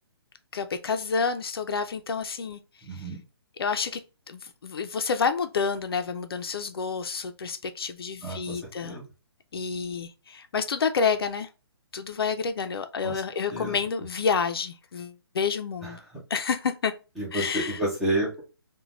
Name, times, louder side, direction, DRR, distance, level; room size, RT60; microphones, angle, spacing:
voice 1, 0.5-2.6 2.9-3.1 3.6-9.0 9.5-11.5 11.9-16.0 16.3-16.9 17.3-17.8, left 5 dB, 60° left, 0.4 m, -29 dB
voice 2, 2.8-3.2 8.2-9.0 13.0-13.2 13.5-13.8 15.8-15.9 17.2-18.4, right 1 dB, ahead, 0.4 m, -30 dB
3.1 x 2.2 x 2.4 m
hypercardioid pair, 170°, 14 cm